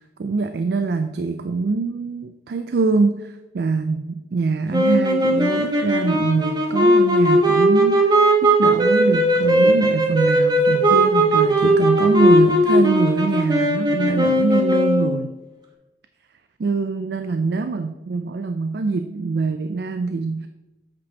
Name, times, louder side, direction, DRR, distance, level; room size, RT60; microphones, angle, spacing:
voice 1, 0.2-15.3 16.6-20.5, right 4 dB, 65° right, 9 dB, 0.4 m, -23 dB
sound 1, 4.7-15.2, right 1 dB, 25° right, 1.1 m, -18 dB
8.1 x 5.3 x 3.9 m, 1.0 s
head